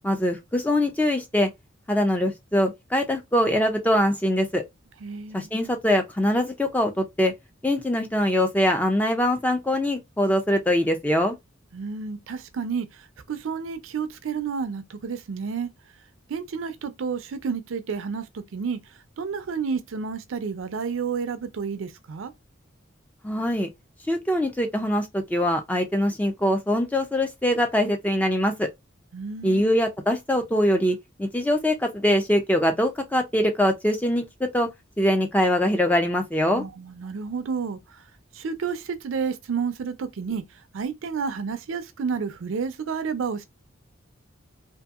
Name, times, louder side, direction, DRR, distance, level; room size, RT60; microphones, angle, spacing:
voice 1, 0.0-1.5 1.9-4.6 5.3-7.3 7.6-11.4 23.2-23.7 24.1-28.7 29.4-34.7 35.0-36.6, left 1 dB, 10° left, 0.3 m, -23 dB
voice 2, 5.0-5.5 11.7-12.9 13.3-15.7 16.3-18.8 19.2-22.3 29.1-29.6 36.5-37.8 38.4-40.4 40.7-43.4, right 5 dB, 80° right, 0.4 m, -30 dB
2.6 x 2.6 x 2.3 m
head